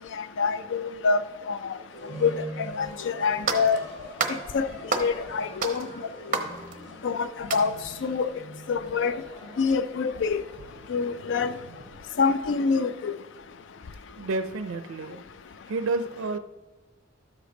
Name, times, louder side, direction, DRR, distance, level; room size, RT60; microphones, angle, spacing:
voice 1, 0.4-1.2 1.5-1.6 2.2-2.3 2.8-3.8 4.5-4.7 5.0-5.9 7.0-7.7 8.0-8.3 8.7-9.2 9.6-10.4 10.9-11.5 12.2-13.1, left 5 dB, 65° left, 0.4 m, -25 dB
sound 1, 1.9-12.1, equal, 20° left, 3.3 m, -44 dB
sound 2, 2.9-3.0 3.5-3.8 4.2-4.4 4.9-5.2 5.6-7.1 7.5-7.8, right 4 dB, 40° right, 0.9 m, -30 dB
voice 2, 14.2-15.2 15.7-16.4, right 3 dB, 85° right, 0.4 m, -30 dB
13.0 x 5.2 x 3.8 m
head